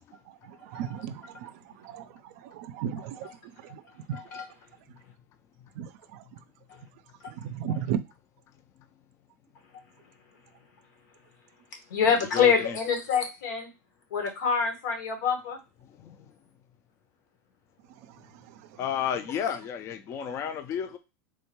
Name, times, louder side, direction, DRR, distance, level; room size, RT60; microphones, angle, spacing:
voice 1, 0.5-1.5 1.8-2.1 2.4-3.3 3.7-3.8 4.1-4.2 5.8-6.2 7.4-8.0, right 9 dB, 60° right, 0.4 m, -34 dB
voice 2, 4.1-4.4 11.9-13.7 14.1-15.6, left 6 dB, 85° left, 1.2 m, -25 dB
voice 3, 12.3-12.8 16.0-16.3 18.8-21.0, left 8 dB, 30° left, 0.3 m, -32 dB
3.6 x 2.2 x 2.9 m
supercardioid pair, 140°, 9 cm